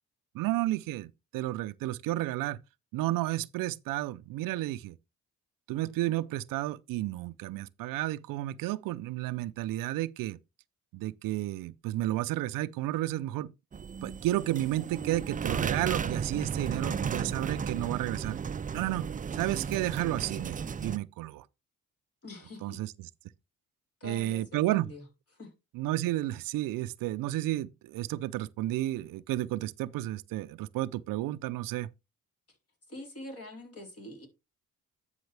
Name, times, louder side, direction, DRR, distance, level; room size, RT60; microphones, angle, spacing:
voice 1, 0.3-2.6 2.9-5.0 5.7-10.4 10.9-13.5 14.0-18.4 18.7-19.1 19.3-21.5 22.6-22.9 24.0-24.9 25.7-31.9, right 16 dB, 90° right, 0.5 m, -32 dB
sound 1, 13.7-21.0, right 6 dB, 25° right, 0.4 m, -34 dB
voice 2, 22.2-22.8 24.0-25.1 25.3-25.5 32.5-32.6 32.9-34.3, left 1 dB, 45° left, 4.0 m, -45 dB
10.5 x 5.6 x 3.3 m
cardioid pair, 70°, 32 cm